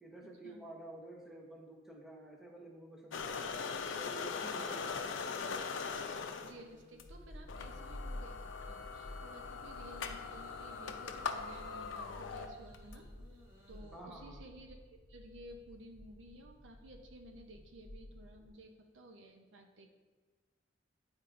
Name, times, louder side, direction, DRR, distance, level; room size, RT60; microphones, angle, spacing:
voice 1, 0.0-3.4 3.9-4.8 13.9-14.4, right 1 dB, ahead, -2 dB, 0.8 m, -50 dB
sound 1, 3.1-6.5 7.0-7.1 7.5-13.0, left 5 dB, 90° left, 0.5 m, -41 dB
voice 2, 3.3-3.6 4.7-4.8 6.4-19.9, right 1 dB, 75° right, 3 dB, 0.6 m, -55 dB
sound 2, 5.0-8.0 9.8-14.0, left 1 dB, 45° right, 1.7 m, -63 dB
sound 3, 7.0-18.5, left 1 dB, 50° left, 0.8 m, -52 dB
9.3 x 4.5 x 2.5 m, 1.4 s
head